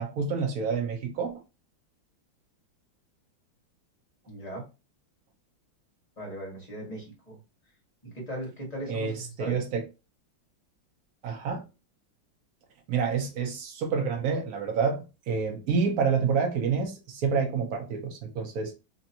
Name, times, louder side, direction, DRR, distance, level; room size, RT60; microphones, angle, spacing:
voice 1, 0.0-1.3 8.9-9.8 11.2-11.6 12.9-18.7, right 5 dB, 60° right, 1.1 m, -28 dB
voice 2, 4.3-4.6 6.2-7.4 8.1-9.6, right 1 dB, 25° left, 1.3 m, -38 dB
3.4 x 2.9 x 2.8 m
omnidirectional pair, 2.1 m